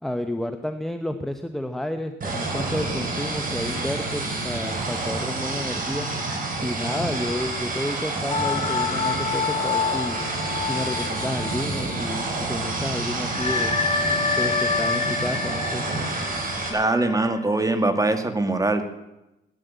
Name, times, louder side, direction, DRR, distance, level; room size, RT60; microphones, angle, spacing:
voice 1, 0.0-6.1 6.6-10.2 10.6-13.7 14.4-15.8, left 1 dB, ahead, 7 dB, 1.0 m, -31 dB
sound 1, 2.2-16.7, right 2 dB, 45° right, 4.3 m, -29 dB
sound 2, 8.3-12.3 12.6-12.7 13.3-18.0, left 5 dB, 35° left, 1.8 m, -28 dB
voice 2, 16.7-18.8, right 2 dB, 15° right, 8 dB, 2.0 m, -22 dB
16.5 x 10.5 x 8.1 m, 0.96 s
cardioid pair, 90°, 20 cm